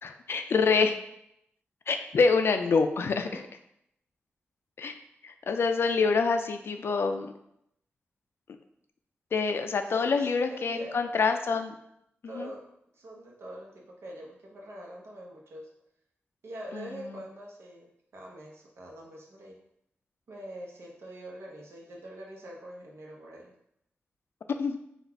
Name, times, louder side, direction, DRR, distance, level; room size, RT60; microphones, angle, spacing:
voice 1, 0.0-0.9 1.9-3.3 4.8-4.9 5.2-7.3 9.3-11.7 12.2-12.5 16.7-17.2 24.6-24.8, left 4 dB, 65° left, 7 dB, 0.4 m, -26 dB
voice 2, 9.9-11.1 12.3-12.7 12.9-15.7 16.4-19.6 20.3-23.5, right 1 dB, 85° right, -2 dB, 0.9 m, -44 dB
4.0 x 2.4 x 4.4 m, 0.76 s
wide cardioid pair, 120°, 4 cm